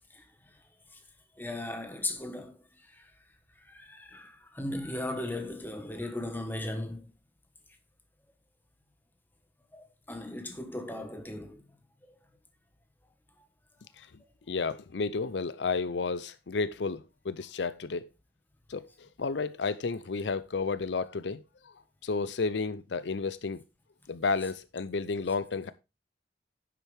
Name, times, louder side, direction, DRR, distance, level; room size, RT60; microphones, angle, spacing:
voice 1, 1.4-3.1 3.6-7.1 9.7-11.6 12.0-12.1 13.4-13.5, left 1 dB, 10° left, 1.3 m, -37 dB
voice 2, 14.5-18.1 18.7-18.9 19.2-21.4 22.0-23.6 24.1-25.7, left 4 dB, 75° left, 0.6 m, -31 dB
10.0 x 7.5 x 3.4 m
head